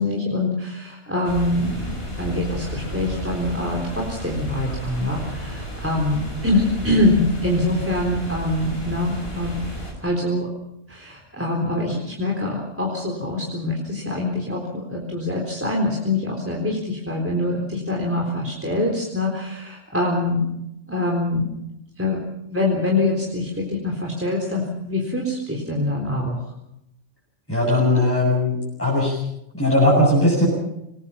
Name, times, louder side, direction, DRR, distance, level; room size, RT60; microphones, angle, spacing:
voice 1, 0.0-9.6 10.0-10.5 10.9-20.4 20.9-21.5 22.0-22.2 22.5-26.4, left 2 dB, 10° right, -3 dB, 4.0 m, -24 dB
sound 1, 1.2-9.9, equal, 50° left, 6.4 m, -33 dB
voice 2, 27.5-29.2 29.5-30.5, left 1 dB, 10° left, -7 dB, 7.7 m, -18 dB
26.5 x 20.5 x 5.8 m, 0.83 s
omnidirectional pair, 1.2 m